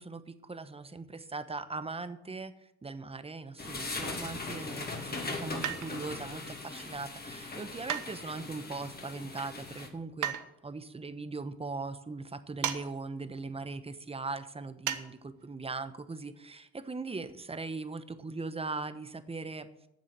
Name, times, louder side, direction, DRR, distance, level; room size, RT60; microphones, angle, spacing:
voice 1, 0.0-2.5 2.8-10.3 10.6-19.7, right 3 dB, 20° right, 11 dB, 0.9 m, -40 dB
sound 1, 3.6-9.9, left 3 dB, 30° left, 2.3 m, -40 dB
sound 2, 5.6-6.2 7.9-8.6 10.2-10.5 12.6-12.9 13.1-13.2 14.9-15.1 15.4-15.5, right 10 dB, 85° right, 1.0 m, -34 dB
9.4 x 7.3 x 8.1 m, 0.87 s
cardioid pair, 90°, 30 cm